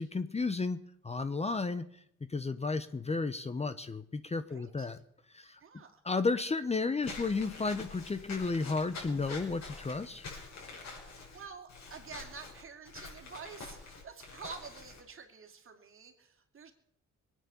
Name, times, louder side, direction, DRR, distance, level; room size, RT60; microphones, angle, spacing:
voice 1, 0.0-2.0 2.3-5.0 5.3-5.6 6.0-10.3, left 3 dB, 20° left, 12 dB, 0.9 m, -33 dB
voice 2, 4.5-4.9 5.6-6.0 10.9-16.7, right 6 dB, 45° right, 5 dB, 2.7 m, -49 dB
Walk footsteps / Squeak, 7.0-15.0, left 4 dB, 60° left, 6.0 m, -46 dB
21.0 x 9.2 x 7.0 m, 0.73 s
cardioid pair, 90°, 30 cm